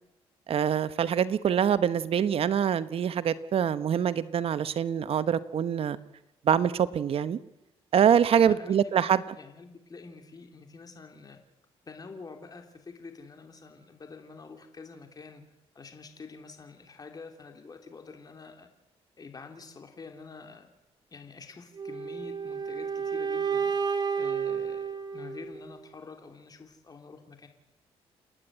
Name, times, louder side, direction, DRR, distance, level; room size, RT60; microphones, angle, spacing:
voice 1, 0.5-6.0 6.4-7.4 7.9-9.2, right 8 dB, 60° right, 14 dB, 1.0 m, -25 dB
voice 2, 8.4-9.1 9.3-11.4 11.9-15.4 15.7-18.7 19.2-20.7 21.1-23.7 24.2-27.5, left 4 dB, 35° left, 4 dB, 3.3 m, -47 dB
sound 1, 21.8-25.8, right 6 dB, 40° right, 2.2 m, -31 dB
29.5 x 9.9 x 9.1 m, 0.92 s
cardioid pair, 80°, 11 cm